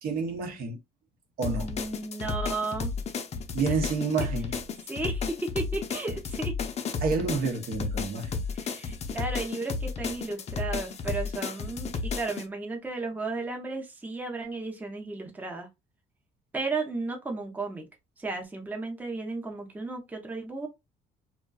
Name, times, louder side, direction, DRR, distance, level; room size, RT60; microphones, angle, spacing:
voice 1, 0.0-0.8 1.4-1.7 3.5-4.5 7.0-8.4, right 4 dB, 60° right, 0.7 m, -29 dB
sound 1, 1.4-12.4, left 5 dB, 40° left, 0.5 m, -33 dB
voice 2, 1.6-2.9 3.6-3.7 4.9-6.6 8.5-15.7 16.5-17.9 18.2-20.7, right 3 dB, 10° right, 0.6 m, -34 dB
2.5 x 2.2 x 2.2 m
cardioid pair, 110°, 17 cm